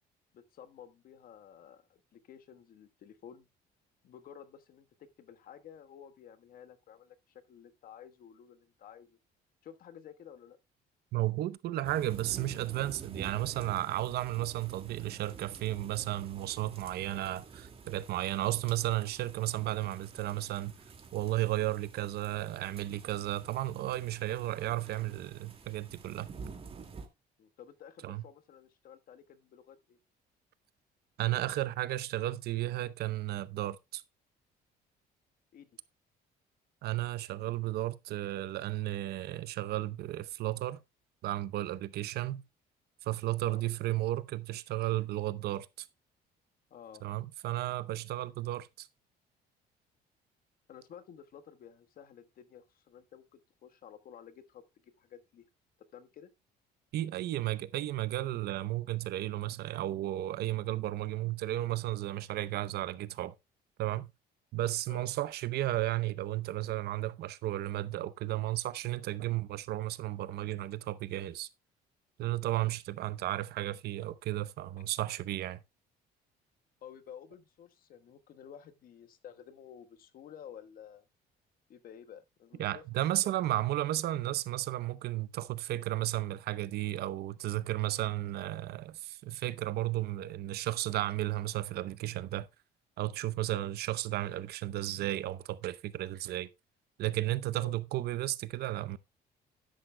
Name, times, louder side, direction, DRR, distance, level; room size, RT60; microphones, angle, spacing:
voice 1, 0.3-3.5 4.0-9.2 9.6-10.6 27.4-30.0 35.5-35.7 43.4-43.6 46.7-47.0 50.7-55.4 55.9-56.3 64.9-65.1 76.8-81.1 81.7-82.8 83.1-83.3 93.5-93.7 97.6-97.8, left 9 dB, 60° left, 1.3 m, -52 dB
voice 2, 11.1-20.7 21.1-26.3 28.0-28.2 31.2-34.0 36.8-40.8 41.2-42.4 43.0-45.9 47.0-48.9 56.9-63.3 63.8-64.1 64.5-71.5 72.2-75.6 82.6-92.5 93.0-96.5 97.0-99.0, right 15 dB, 70° right, 0.7 m, -33 dB
sound 1, 11.8-27.1, right 5 dB, 35° right, 2.1 m, -50 dB
13.0 x 10.5 x 2.2 m
cardioid pair, 110°, 17 cm